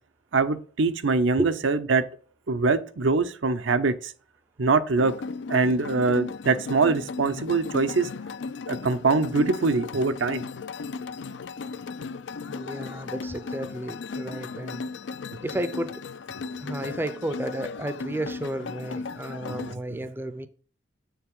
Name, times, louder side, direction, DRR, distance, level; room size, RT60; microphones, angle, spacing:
voice 1, 0.3-2.0 2.5-4.1 4.6-5.1 5.5-8.1 8.7-10.4 19.5-20.0, right 4 dB, 75° right, 0.7 m, -23 dB
sound 1, 5.0-19.8, left 4 dB, 65° left, 0.4 m, -36 dB
voice 2, 12.5-14.8 15.4-16.0 16.6-20.5, right 1 dB, 10° right, 0.5 m, -32 dB
7.1 x 6.6 x 3.7 m
head